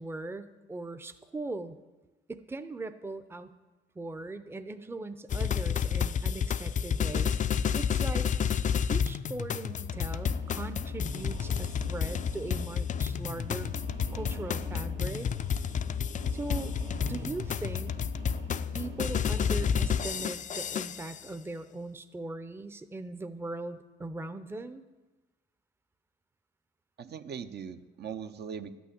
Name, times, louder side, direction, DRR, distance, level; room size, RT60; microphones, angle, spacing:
voice 1, 0.0-1.8 2.3-3.5 4.0-7.3 7.7-8.3 8.9-13.7 14.1-15.3 16.3-16.7 17.0-18.0 18.7-24.8, right 2 dB, 10° right, 10 dB, 0.6 m, -39 dB
sound 1, 5.3-21.2, left 7 dB, 40° left, 0.4 m, -30 dB
sound 2, 9.9-20.3, right 3 dB, 80° right, 2.1 m, -45 dB
voice 2, 27.0-28.7, right 7 dB, 55° right, 9 dB, 0.7 m, -40 dB
12.0 x 6.2 x 8.5 m, 1.2 s
cardioid pair, 90°, 20 cm